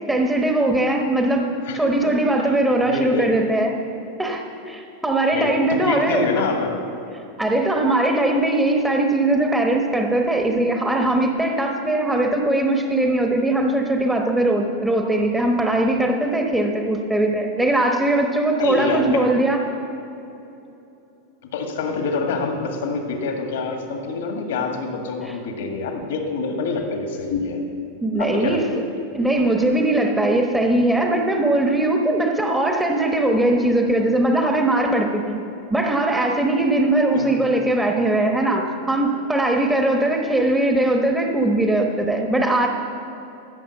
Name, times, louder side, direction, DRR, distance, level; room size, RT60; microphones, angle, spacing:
voice 1, 0.1-3.7 4.2-6.3 7.4-19.6 28.0-28.7 29.1-35.4 35.7-42.7, right 1 dB, 10° right, 2 dB, 1.0 m, -20 dB
voice 2, 1.6-2.5 2.8-3.4 5.3-6.8 18.6-19.3 21.5-27.6 28.2-28.6 37.1-37.4, left 4 dB, 75° left, 3 dB, 1.9 m, -26 dB
14.0 x 6.0 x 7.2 m, 2.9 s
hypercardioid pair, 105°, 0 cm